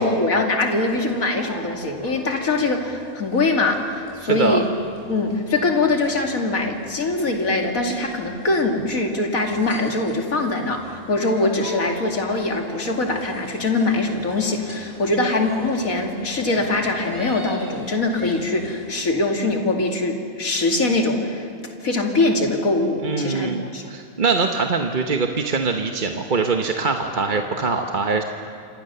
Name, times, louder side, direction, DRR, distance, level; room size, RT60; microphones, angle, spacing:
voice 1, 0.0-4.7 5.1-21.5 21.8-23.8, left 2 dB, 85° left, 2 dB, 2.9 m, -22 dB
sound 1, 0.7-19.1, right 1 dB, 20° right, 5.1 m, -41 dB
voice 2, 23.0-28.2, right 4 dB, 40° right, 4 dB, 1.2 m, -23 dB
28.0 x 26.5 x 6.9 m, 2.3 s
omnidirectional pair, 1.4 m